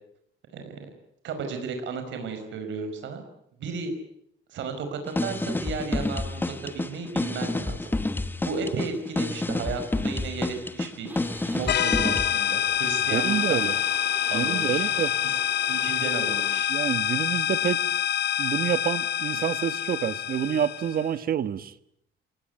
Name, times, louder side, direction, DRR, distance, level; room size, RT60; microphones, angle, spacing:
voice 1, 1.2-3.2 3.6-3.9 4.5-7.9 8.4-11.1 11.5-13.7 14.3-14.9 15.2-15.3 15.7-16.7, right 4 dB, 65° right, 6 dB, 5.3 m, -34 dB
sound 1, 5.0-12.5, left 2 dB, 10° left, 1.2 m, -29 dB
sound 2, 11.1-16.6, right 1 dB, 10° right, 3.5 m, -44 dB
sound 3, 11.7-21.1, left 11 dB, 55° left, 1.0 m, -26 dB
voice 2, 13.1-13.7 14.3-15.1 16.7-17.8 18.4-21.7, right 9 dB, 45° right, 14 dB, 1.3 m, -27 dB
29.0 x 18.5 x 9.4 m, 0.73 s
cardioid pair, 150°, 21 cm